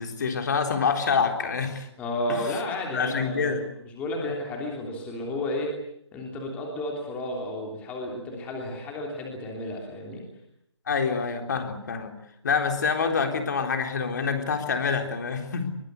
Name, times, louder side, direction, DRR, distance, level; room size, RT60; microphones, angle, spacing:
voice 1, 0.0-1.9 2.3-2.6 2.9-3.7 4.2-4.3 10.9-12.1 12.4-15.7, left 5 dB, 40° left, 5 dB, 3.8 m, -26 dB
voice 2, 2.0-5.7 6.1-10.2, left 1 dB, 10° left, 0 dB, 3.2 m, -32 dB
24.0 x 22.5 x 8.2 m, 0.75 s
figure-of-eight pair, 165°, 15 cm